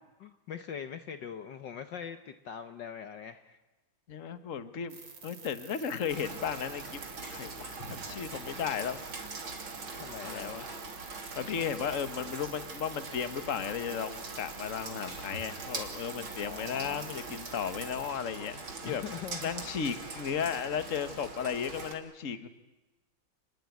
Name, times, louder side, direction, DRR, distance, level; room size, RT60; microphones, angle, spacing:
voice 1, 0.2-3.6 10.0-10.7 16.4-17.1 18.8-19.5, left 8 dB, 60° left, 9 dB, 1.6 m, -42 dB
voice 2, 4.1-5.0 5.2-7.0 7.3-9.0 10.2-10.7 11.3-19.0 19.4-22.5, left 7 dB, 40° left, 11 dB, 1.6 m, -35 dB
sound 1, 4.9-18.1, right 5 dB, 85° right, 3.8 m, -50 dB
Rain, 6.1-21.9, right 3 dB, 65° right, 3.7 m, -42 dB
sound 2, 6.9-18.2, left 1 dB, 75° left, 7.4 m, -56 dB
29.0 x 20.5 x 9.5 m, 1.1 s
omnidirectional pair, 2.4 m